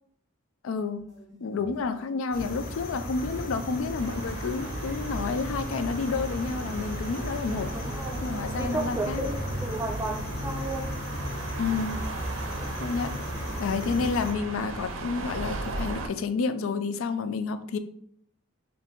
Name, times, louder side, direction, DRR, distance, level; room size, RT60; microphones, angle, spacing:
voice 1, 0.6-1.1 1.4-7.7 8.2-9.2 11.6-12.0 12.8-13.1 13.6-17.8, left 4 dB, 85° left, 11 dB, 0.4 m, -30 dB
sound 1, 1.0-15.8, equal, 20° left, 1.5 m, -49 dB
Bedroom Ambience, 2.3-14.3, left 1 dB, 50° left, 0.9 m, -35 dB
sound 2, 4.0-16.1, right 3 dB, 80° right, 0.6 m, -38 dB
voice 2, 7.7-8.2 8.6-10.9 13.4-13.6, right 2 dB, 15° right, 4 dB, 0.4 m, -33 dB
4.4 x 2.5 x 3.7 m, 0.67 s
head